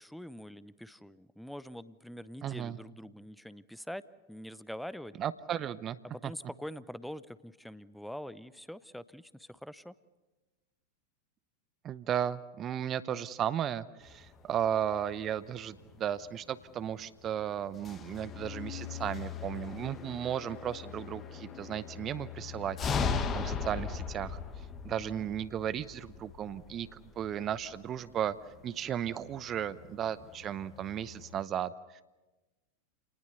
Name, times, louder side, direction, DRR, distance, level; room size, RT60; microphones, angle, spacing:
voice 1, 0.0-4.0 4.3-5.1 6.0-9.9 24.7-25.3, equal, ahead, 17 dB, 0.7 m, -44 dB
voice 2, 2.4-2.8 5.2-6.0 6.2-6.3 11.8-24.4 24.8-28.4 28.6-32.0, right 10 dB, 30° right, 16 dB, 0.8 m, -35 dB
sound 1, 14.0-31.4, left 6 dB, 25° left, 1.7 m, -40 dB
29.5 x 19.0 x 6.9 m, 1.1 s
figure-of-eight pair, 90°, 0 cm